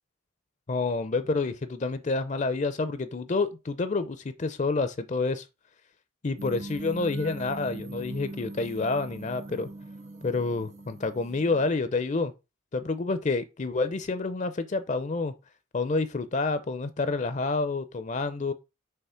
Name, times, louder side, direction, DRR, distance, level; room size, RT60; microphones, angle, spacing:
voice 1, 0.7-5.5 6.2-9.7 10.2-12.3 12.7-15.3 15.7-18.5, left 3 dB, 35° left, 0.5 m, -28 dB
sound 1, 6.4-11.7, right 2 dB, 35° right, 0.6 m, -41 dB
5.6 x 3.2 x 5.6 m
head